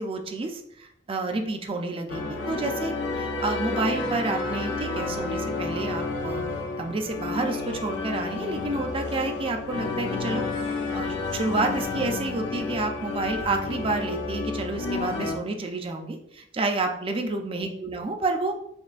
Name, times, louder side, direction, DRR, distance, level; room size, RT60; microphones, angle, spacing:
voice 1, 0.0-6.4 6.8-18.7, right 3 dB, 30° right, 4 dB, 0.4 m, -30 dB
sound 1, 2.1-15.4, left 3 dB, 80° left, 0.6 m, -31 dB
5.3 x 2.6 x 2.4 m, 0.76 s
head